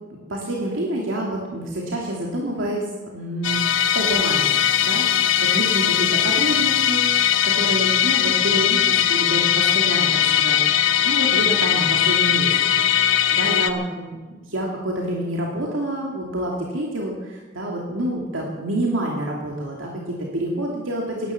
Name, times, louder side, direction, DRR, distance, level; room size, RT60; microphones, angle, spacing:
voice 1, 0.1-3.6 3.9-7.0 7.4-12.7 13.3-14.2 14.5-21.3, right 1 dB, 85° right, -1 dB, 2.7 m, -28 dB
Musical instrument, 3.4-13.7, left 10 dB, 90° left, 1.1 m, -19 dB
17.0 x 12.0 x 7.1 m, 1.3 s
head